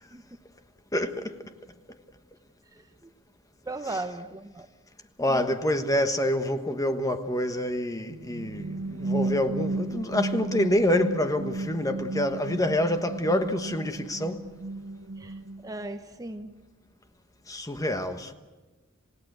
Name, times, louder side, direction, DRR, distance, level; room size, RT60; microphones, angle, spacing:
voice 1, 0.9-1.3 5.2-14.5 17.5-18.3, left 1 dB, 15° left, 1.3 m, -27 dB
voice 2, 2.7-3.1 3.6-4.7 5.3-5.4 15.2-16.6, right 2 dB, 15° right, 0.8 m, -37 dB
sound 1, 8.1-15.9, right 2 dB, 70° right, 0.7 m, -33 dB
27.5 x 17.0 x 8.1 m
head